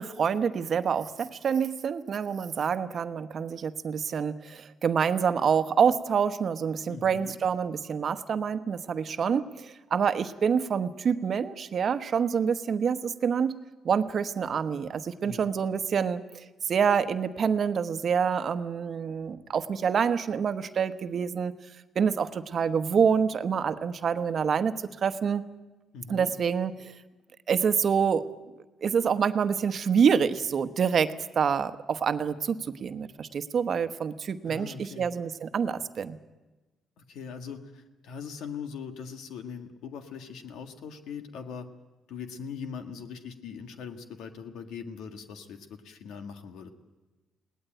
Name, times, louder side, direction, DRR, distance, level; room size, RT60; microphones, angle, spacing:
voice 1, 0.0-21.5 21.9-24.7 25.0-25.4 26.1-26.9 27.5-28.2 28.8-36.2, right 7 dB, 55° right, 10 dB, 1.0 m, -27 dB
voice 2, 6.9-7.4 15.2-15.5 25.9-26.3 34.4-35.1 37.0-41.7 42.1-46.7, left 6 dB, 85° left, 6 dB, 1.8 m, -41 dB
21.0 x 18.0 x 9.1 m, 1.1 s
cardioid pair, 90°, 0 cm